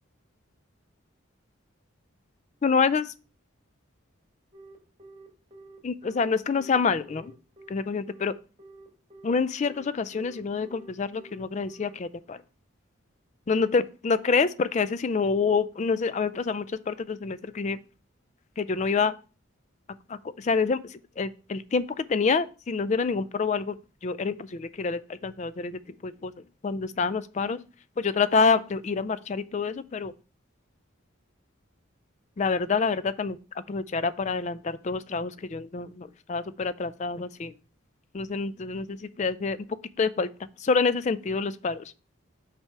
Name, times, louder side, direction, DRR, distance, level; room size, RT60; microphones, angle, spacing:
voice 1, 2.6-3.1 5.8-7.3 7.7-8.3 9.2-12.4 13.5-17.8 18.6-19.2 20.1-27.7 28.0-30.1 32.4-37.6 38.1-41.9, left 4 dB, 35° left, 0.3 m, -27 dB
Telephone, 4.5-11.9, right 2 dB, 30° right, 1.8 m, -49 dB
5.8 x 3.4 x 5.6 m
head